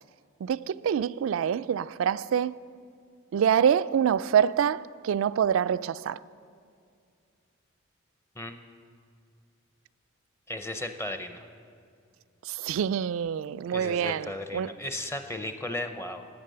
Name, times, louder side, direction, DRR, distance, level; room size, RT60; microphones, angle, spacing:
voice 1, 0.4-2.6 3.3-6.2 12.5-14.7, right 8 dB, 70° right, 0.3 m, -26 dB
voice 2, 10.5-11.5 13.7-16.3, left 1 dB, 10° left, 0.6 m, -35 dB
15.5 x 9.4 x 6.8 m
head